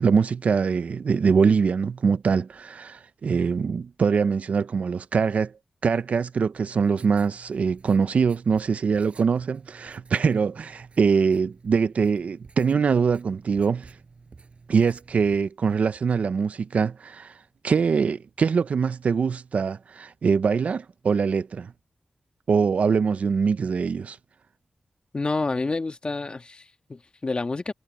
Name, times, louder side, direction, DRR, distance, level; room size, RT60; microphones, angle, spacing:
voice 1, 0.0-5.5 5.8-13.9 14.7-17.3 17.6-21.7 22.5-24.2, right 5 dB, 75° right, 0.5 m, -23 dB
Writing, 6.5-15.5, right 4 dB, 60° right, 5.3 m, -52 dB
voice 2, 25.1-27.7, left 3 dB, 45° left, 1.6 m, -29 dB
cardioid pair, 50°, 2 cm